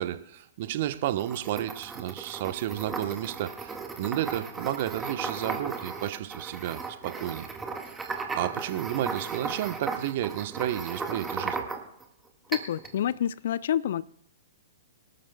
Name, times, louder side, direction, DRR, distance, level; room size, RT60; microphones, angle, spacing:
voice 1, 0.0-7.5 8.0-11.6, right 13 dB, 45° right, 1.1 m, -32 dB
sound 1, 1.0-12.0 12.5-13.0, right 4 dB, 10° right, 1.7 m, -36 dB
voice 2, 12.5-14.0, left 10 dB, 55° left, 0.4 m, -28 dB
24.0 x 13.0 x 2.3 m
figure-of-eight pair, 110°, 0 cm